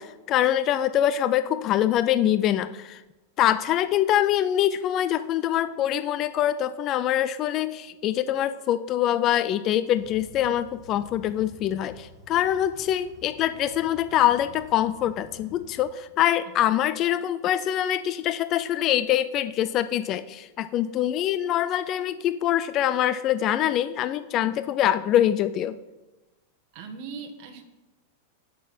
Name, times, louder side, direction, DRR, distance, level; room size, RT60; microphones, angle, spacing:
voice 1, 0.0-3.0 3.4-25.8, left 11 dB, 35° left, 13 dB, 0.4 m, -24 dB
sound 1, 9.9-15.8, left 1 dB, 10° right, 2.7 m, -50 dB
voice 2, 26.7-27.6, right 5 dB, 45° right, 4 dB, 1.7 m, -39 dB
17.5 x 6.2 x 4.4 m, 1.1 s
supercardioid pair, 145°, 0 cm